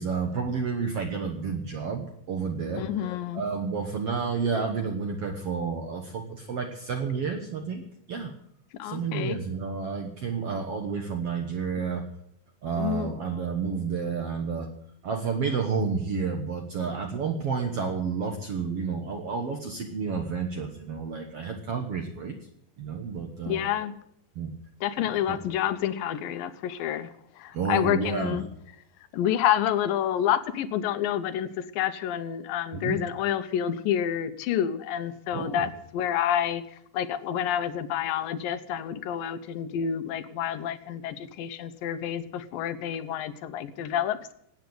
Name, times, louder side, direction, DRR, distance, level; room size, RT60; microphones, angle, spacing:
voice 1, 0.0-2.9 3.3-7.8 8.1-8.3 8.8-12.1 12.6-14.7 15.0-22.3 22.8-23.6 24.3-24.6 25.0-25.4 27.5-28.4 32.7-33.0 35.3-35.7, right 5 dB, 60° right, 4 dB, 1.6 m, -30 dB
voice 2, 2.8-3.5 8.8-9.4 12.8-13.1 23.5-23.9 24.8-28.5 29.1-36.6 36.9-44.3, left 10 dB, 75° left, 12 dB, 2.5 m, -28 dB
17.5 x 9.1 x 7.8 m, 0.74 s
omnidirectional pair, 4.3 m